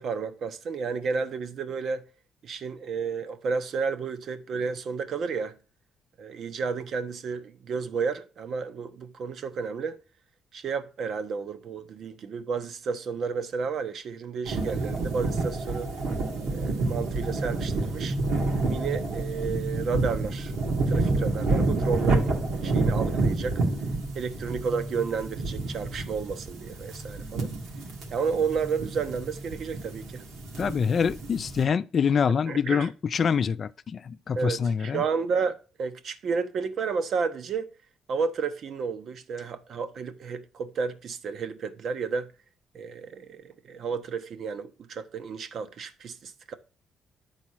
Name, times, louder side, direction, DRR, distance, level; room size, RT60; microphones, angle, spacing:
voice 1, 0.0-2.0 2.4-5.6 6.2-10.0 10.5-15.9 16.5-18.2 18.7-20.5 20.9-23.6 24.1-27.5 28.1-30.2 32.5-32.9 34.4-37.7 38.1-42.3 42.7-46.5, right 5 dB, 60° right, 0.9 m, -31 dB
sound 1, 14.4-31.6, right 2 dB, 80° right, 2.1 m, -29 dB
voice 2, 30.6-35.0, left 6 dB, 45° left, 0.4 m, -25 dB
9.9 x 4.2 x 6.2 m
cardioid pair, 100°, 0 cm